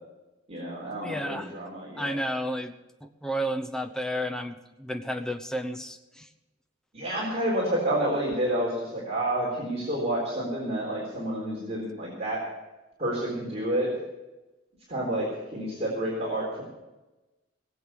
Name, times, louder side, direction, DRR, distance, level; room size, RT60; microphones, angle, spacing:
voice 1, 0.5-2.2 6.9-12.4 13.0-13.9 14.9-16.6, right 1 dB, 35° right, -4 dB, 3.9 m, -29 dB
voice 2, 1.0-1.6 2.0-2.7 3.0-6.3, equal, 5° left, 6 dB, 0.9 m, -32 dB
19.0 x 8.0 x 6.7 m, 1.1 s
head